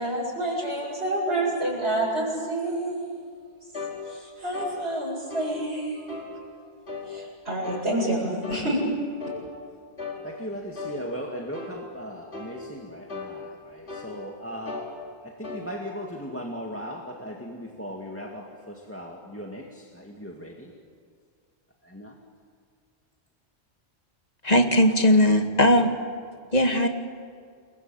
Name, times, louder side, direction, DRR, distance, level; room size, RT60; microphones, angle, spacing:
voice 1, 0.0-6.2 7.0-8.9, right 1 dB, 70° right, 8.3 m, -29 dB
sound 1, 3.7-4.0 4.5-4.8 5.3-5.6 6.1-6.3 6.9-7.1 7.6-7.9 8.4-8.7 9.2-9.4 10.0-10.2 10.8-11.0 11.5-11.8 12.3-12.6 13.1-13.3 13.9-14.1 14.7-14.9 15.4-15.7, left 4 dB, 70° left, 5.1 m, -36 dB
voice 2, 10.2-13.4 14.0-14.8 15.4-19.6 20.2-20.7 21.9-22.1, equal, 10° left, 2.1 m, -37 dB
voice 3, 24.4-25.9 26.5-26.9, left 1 dB, 35° left, 2.2 m, -19 dB
29.0 x 22.5 x 9.0 m
omnidirectional pair, 1.1 m